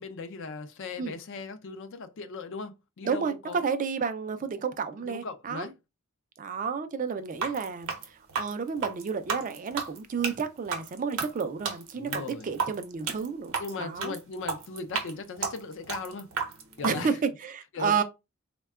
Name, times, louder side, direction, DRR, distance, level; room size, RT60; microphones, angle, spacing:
voice 1, 0.0-3.7 5.0-5.7 10.3-10.4 11.9-12.5 13.6-16.3 16.8-17.2 17.7-18.0, left 4 dB, 60° left, 0.4 m, -38 dB
voice 2, 3.0-5.7 6.4-7.9 8.4-13.5 13.8-14.1 16.8-18.0, right 6 dB, 35° right, 0.3 m, -31 dB
sound 1, 7.3-16.9, right 5 dB, 70° right, 0.7 m, -33 dB
3.5 x 2.2 x 2.3 m
head